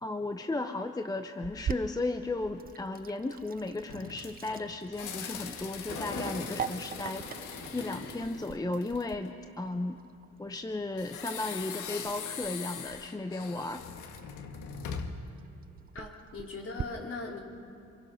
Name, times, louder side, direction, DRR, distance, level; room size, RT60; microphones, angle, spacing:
voice 1, 0.0-7.3 7.7-10.0 10.4-13.9, left 2 dB, 10° left, 7 dB, 0.8 m, -35 dB
Sink (filling or washing), 1.4-16.8, right 8 dB, 30° right, 0.4 m, -44 dB
sound 1, 3.9-9.3 11.0-15.3, left 7 dB, 80° left, 1.6 m, -42 dB
Thunder, 5.9-8.9, left 2 dB, 65° left, 7.6 m, -42 dB
voice 2, 15.9-17.4, left 3 dB, 45° left, 0 dB, 4.1 m, -39 dB
26.0 x 23.0 x 5.7 m, 2.5 s
cardioid pair, 90°, 30 cm